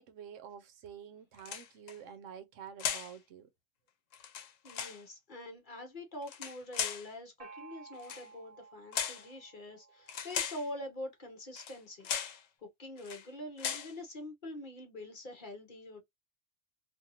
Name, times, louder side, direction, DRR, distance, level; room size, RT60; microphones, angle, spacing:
voice 1, 0.0-3.5, right 8 dB, 75° right, 0.9 m, -49 dB
sound 1, 1.4-2.0 2.8-3.2 4.1-5.0 6.2-7.1 8.0-8.3 8.9-9.3 10.1-10.7 11.6-11.8 12.0-12.4 13.0-13.3 13.6-13.9, left 8 dB, 75° left, 1.0 m, -37 dB
voice 2, 4.6-16.0, left 1 dB, 45° left, 0.8 m, -45 dB
Gong, 7.4-10.9, right 5 dB, 30° right, 1.1 m, -55 dB
2.6 x 2.5 x 2.8 m
omnidirectional pair, 1.3 m